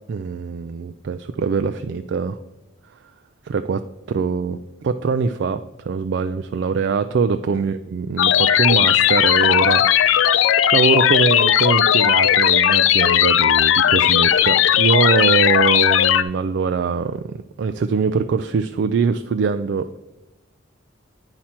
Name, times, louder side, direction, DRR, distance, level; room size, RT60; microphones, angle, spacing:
voice 1, 0.1-2.4 3.4-3.8 4.1-10.2 10.7-20.0, right 5 dB, 65° right, 10 dB, 0.3 m, -22 dB
sound 1, 8.2-16.2, left 10 dB, 85° left, 0.4 m, -16 dB
8.8 x 5.8 x 4.3 m, 1.0 s
head